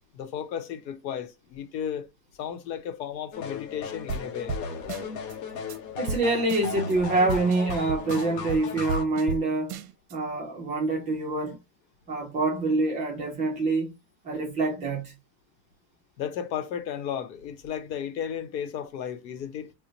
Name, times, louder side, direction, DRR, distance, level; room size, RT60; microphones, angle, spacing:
voice 1, 0.1-2.1 2.4-4.5 16.2-19.7, left 8 dB, 90° left, 0.9 m, -34 dB
sound 1, 3.3-9.0, left 5 dB, 50° left, 0.8 m, -36 dB
sound 2, 4.1-4.2 4.5-4.6 4.9-5.3 5.7-5.8 6.1-6.2 6.5-6.9 7.3-9.4 9.7-10.1, right 4 dB, 60° right, 0.6 m, -33 dB
voice 2, 6.0-9.8 10.1-11.6 12.1-13.9 14.2-15.1, right 2 dB, 15° right, 0.4 m, -26 dB
2.9 x 2.1 x 3.8 m
supercardioid pair, 140°, 50 cm